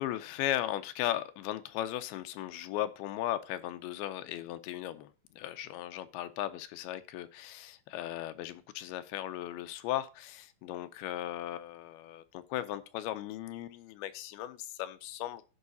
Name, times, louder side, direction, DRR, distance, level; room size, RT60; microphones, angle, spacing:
voice 1, 0.0-15.4, left 13 dB, 90° left, 11 dB, 2.5 m, -37 dB
16.0 x 5.5 x 2.8 m, 0.34 s
omnidirectional pair, 4.4 m